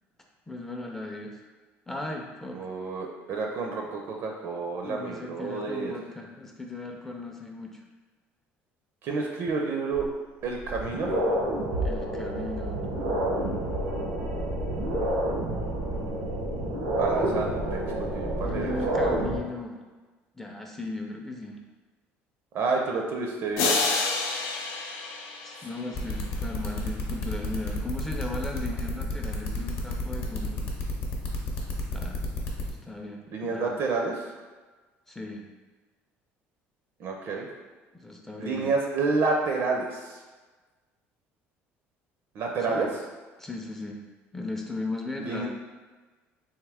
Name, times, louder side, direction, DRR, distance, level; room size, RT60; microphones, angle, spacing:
voice 1, 0.5-1.4 1.9-2.6 4.8-7.8 11.8-12.9 18.4-19.8 20.4-21.6 25.4-30.6 31.9-32.2 32.8-33.7 35.1-35.4 37.9-38.7 42.7-42.9 43.4-44.0 44.3-45.5, left 2 dB, 5° left, 1 dB, 0.4 m, -37 dB
voice 2, 2.5-5.9 9.0-10.1 10.4-11.1 16.9-17.8 18.1-18.7 19.0-19.2 22.5-23.8 33.3-34.3 37.0-37.5 38.4-40.2 42.4-42.9 45.2-45.5, right 4 dB, 55° right, 1 dB, 0.5 m, -29 dB
sound 1, 9.9-10.0 10.6-19.4, right 1 dB, 85° right, 0.9 m, -29 dB
sound 2, 23.6-26.2, left 4 dB, 90° left, 0.5 m, -29 dB
sound 3, 25.9-32.7, left 4 dB, 55° left, 0.8 m, -32 dB
3.5 x 2.7 x 3.4 m, 1.3 s
cardioid pair, 130°, 5 cm